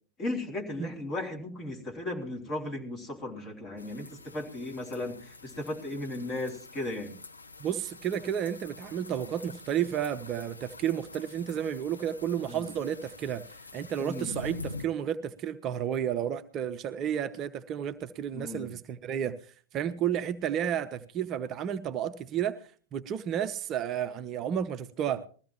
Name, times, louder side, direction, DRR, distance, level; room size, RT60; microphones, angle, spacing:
voice 1, 0.2-7.1 12.5-12.7 14.0-14.3 18.3-18.7, left 2 dB, 25° left, 3.0 m, -36 dB
sound 1, 3.8-14.9, left 3 dB, 80° left, 0.8 m, -46 dB
voice 2, 7.6-13.5 13.7-19.4 19.7-25.3, right 9 dB, 30° right, 0.6 m, -32 dB
20.5 x 14.5 x 3.0 m
figure-of-eight pair, 90°, 0 cm